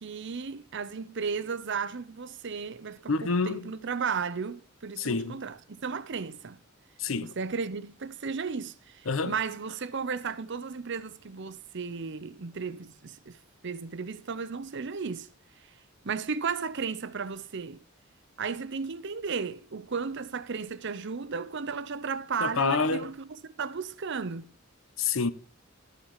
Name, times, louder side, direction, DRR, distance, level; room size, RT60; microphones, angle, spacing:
voice 1, 0.0-6.6 7.2-13.4 13.6-15.3 16.0-17.8 18.4-24.5, right 5 dB, 60° right, 0.7 m, -34 dB
voice 2, 3.1-3.7 5.0-5.4 7.0-7.3 9.1-9.3 22.4-23.1 25.0-25.3, left 4 dB, 75° left, 0.9 m, -27 dB
13.0 x 6.5 x 4.9 m
head